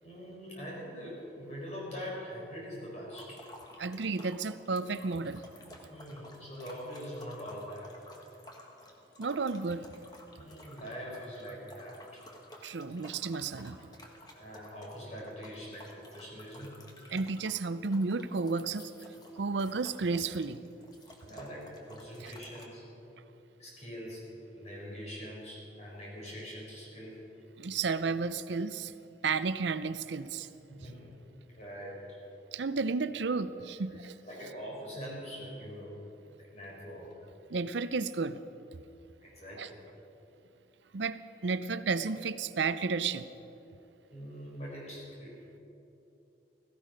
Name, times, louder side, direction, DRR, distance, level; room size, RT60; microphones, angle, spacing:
voice 1, 0.0-3.4 5.9-7.9 10.4-12.2 14.3-16.8 21.2-22.8 23.6-24.2 24.5-27.2 30.7-31.1 31.5-32.0 34.2-36.0 36.4-37.1 39.2-39.8 44.1-45.4, equal, 35° left, -4 dB, 4.2 m, -43 dB
sound 1, 3.1-22.7, left 1 dB, 20° left, 1.4 m, -53 dB
voice 2, 3.8-5.4 9.2-9.9 12.6-13.8 17.1-18.9 19.4-20.6 22.2-22.3 27.6-28.9 29.2-30.5 32.5-34.2 37.5-38.4 39.6-39.7 40.9-43.3, right 4 dB, 75° right, 13 dB, 0.6 m, -32 dB
16.5 x 15.0 x 5.2 m, 2.9 s
head